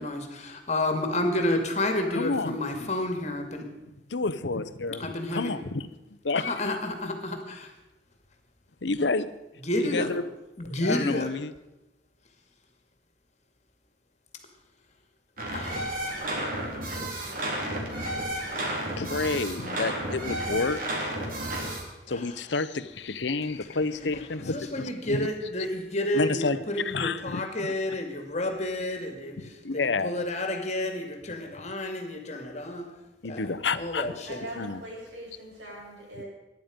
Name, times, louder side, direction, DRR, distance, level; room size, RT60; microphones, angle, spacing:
voice 1, 0.0-3.7 5.0-5.5 6.4-7.7 9.6-10.1 10.6-11.3 15.5-16.0 24.5-29.4 30.0-32.9 33.3-34.4, left 1 dB, 40° left, 5 dB, 2.3 m, -30 dB
voice 2, 2.1-2.9 4.1-5.9 6.2-6.8 8.8-9.3 9.8-10.2 10.6-11.5 18.7-21.0 22.1-25.3 26.1-27.7 29.4-30.3 33.2-34.2 34.6-34.8, left 3 dB, 75° left, 13 dB, 0.8 m, -30 dB
sound 1, 15.4-21.8, right 1 dB, 50° right, 3.4 m, -32 dB
voice 3, 34.3-36.3, right 1 dB, 85° right, -4 dB, 7.9 m, -41 dB
23.5 x 10.5 x 5.3 m, 1.0 s
head